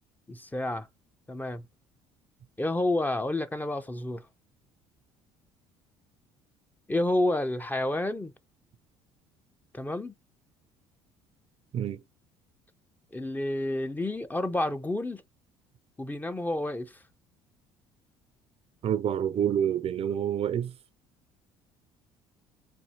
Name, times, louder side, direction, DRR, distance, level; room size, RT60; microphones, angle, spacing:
voice 1, 0.3-0.9 1.3-1.7 2.6-4.2 6.9-8.3 9.7-10.2 13.1-15.2 16.0-17.0, left 1 dB, 15° left, 0.6 m, -29 dB
voice 2, 18.8-20.7, right 9 dB, 50° right, 0.6 m, -27 dB
4.4 x 2.7 x 4.1 m
hypercardioid pair, 65°, 13 cm